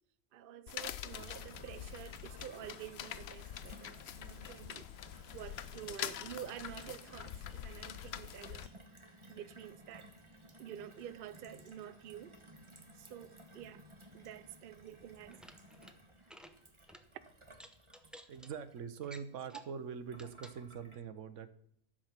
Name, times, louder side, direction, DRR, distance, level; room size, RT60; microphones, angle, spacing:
voice 1, 0.3-4.9 5.3-8.7 9.3-10.1 10.6-12.4 13.0-13.8 14.1-15.4, right 10 dB, 55° right, 0.7 m, -49 dB
sound 1, 0.7-8.7, left 10 dB, 65° left, 0.8 m, -45 dB
Gurgling / Water tap faucet / Sink (filling or washing), 1.0-21.0, right 1 dB, 25° right, 1.3 m, -58 dB
sound 2, 15.2-15.9 16.2-16.5 16.9-17.0 17.5-18.5 19.0-19.8 20.1-20.6, equal, ahead, 0.6 m, -55 dB
voice 2, 18.3-21.5, right 7 dB, 80° right, 1.2 m, -43 dB
11.0 x 7.5 x 5.8 m
omnidirectional pair, 1.3 m